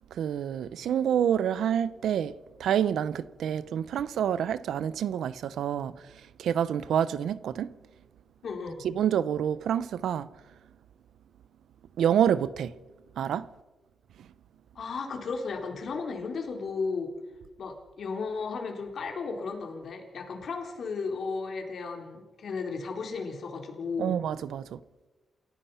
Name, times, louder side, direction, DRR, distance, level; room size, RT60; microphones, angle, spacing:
voice 1, 0.1-2.3 2.6-7.7 8.8-10.3 12.0-12.7 13.2-13.5 14.2-14.3 24.0-24.8, right 9 dB, 85° right, 0.7 m, -28 dB
voice 2, 8.4-8.8 14.7-17.1 17.6-24.2, left 4 dB, 60° left, 4.1 m, -34 dB
28.5 x 16.0 x 5.7 m
cardioid pair, 120°, 0 cm